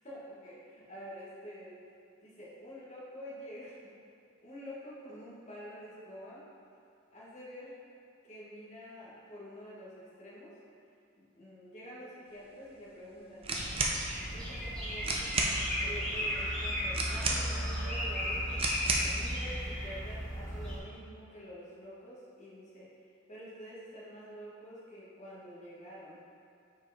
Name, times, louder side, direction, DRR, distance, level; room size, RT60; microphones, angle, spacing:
voice 1, 0.0-1.8 2.2-3.9 4.4-6.4 7.1-7.7 8.3-10.5 11.2-13.5 14.3-15.3 15.8-18.6 19.0-22.9 23.3-26.2, equal, 35° left, -7 dB, 1.3 m, -48 dB
sound 1, 13.4-14.0 14.7-14.8 15.0-15.6 16.9-17.7 18.6-19.1, right 3 dB, 25° right, 0.5 m, -31 dB
sound 2, 13.5-20.8, equal, 5° left, 1.4 m, -35 dB
5.4 x 4.7 x 4.1 m, 2.5 s
head